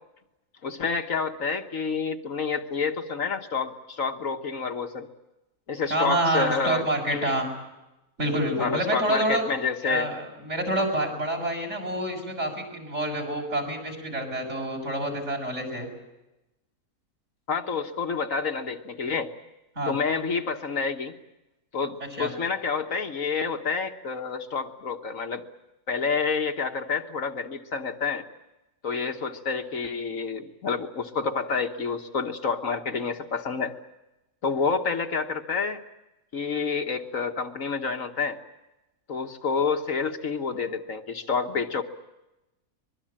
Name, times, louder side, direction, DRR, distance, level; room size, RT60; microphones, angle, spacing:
voice 1, 0.6-5.1 5.7-7.3 8.6-10.1 17.5-19.3 19.9-21.2 21.7-25.4 25.9-28.2 28.8-33.7 34.4-35.8 36.3-38.4 39.1-41.8, left 5 dB, 60° left, 5 dB, 1.6 m, -28 dB
voice 2, 5.9-7.5 8.2-9.4 9.8-15.9 19.8-19.9 22.1-22.3, right 1 dB, 45° right, 4 dB, 7.0 m, -27 dB
24.0 x 22.5 x 8.7 m, 0.98 s
omnidirectional pair, 1.6 m